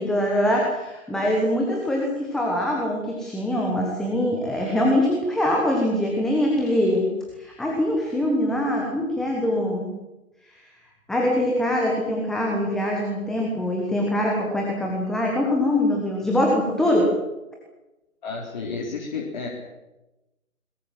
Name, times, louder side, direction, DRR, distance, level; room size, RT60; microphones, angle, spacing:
voice 1, 0.0-7.1 7.3-9.9 11.1-17.1, left 1 dB, ahead, -1 dB, 1.2 m, -23 dB
voice 2, 18.2-19.5, left 4 dB, 30° left, -2 dB, 3.9 m, -31 dB
21.5 x 21.5 x 7.6 m, 1.0 s
figure-of-eight pair, 150°, 42 cm